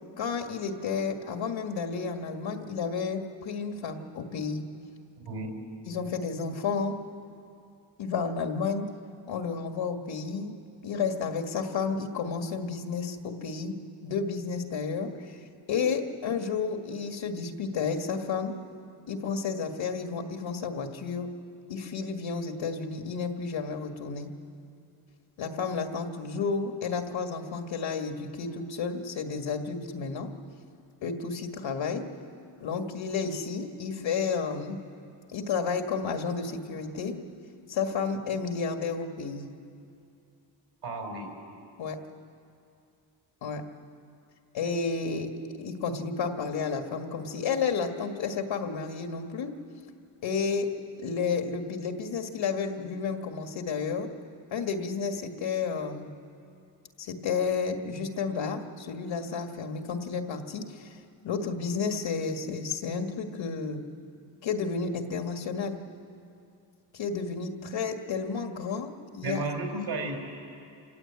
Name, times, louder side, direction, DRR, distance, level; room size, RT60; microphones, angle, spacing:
voice 1, 0.2-4.7 5.9-7.0 8.0-8.9 9.3-10.5 10.8-13.7 14.0-15.4 15.7-18.5 19.1-21.3 21.7-24.3 25.4-30.3 31.0-32.0 32.6-34.8 35.3-37.1 37.7-39.5 41.8-42.0 43.4-43.6 44.5-45.3 45.6-49.5 50.2-50.7 51.0-54.1 54.5-56.1 57.0-61.0 61.2-63.8 64.4-65.8 66.9-69.4, left 5 dB, 80° left, 5 dB, 1.9 m, -31 dB
voice 2, 40.8-41.3 69.2-70.2, right 2 dB, 80° right, 2 dB, 4.7 m, -32 dB
28.0 x 16.0 x 8.8 m, 2.5 s
wide cardioid pair, 130°, 45 cm